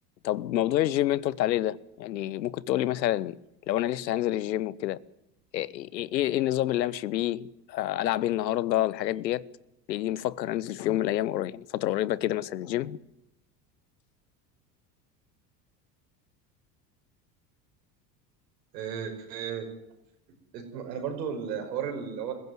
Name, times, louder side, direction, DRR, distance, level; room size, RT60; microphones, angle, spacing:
voice 1, 0.2-3.4 3.7-5.0 5.5-9.5 9.9-13.0, left 13 dB, 85° left, 0.9 m, -28 dB
voice 2, 18.7-19.7 20.5-22.3, right 7 dB, 80° right, 5.4 m, -34 dB
22.0 x 15.5 x 9.4 m
hypercardioid pair, 80°, 49 cm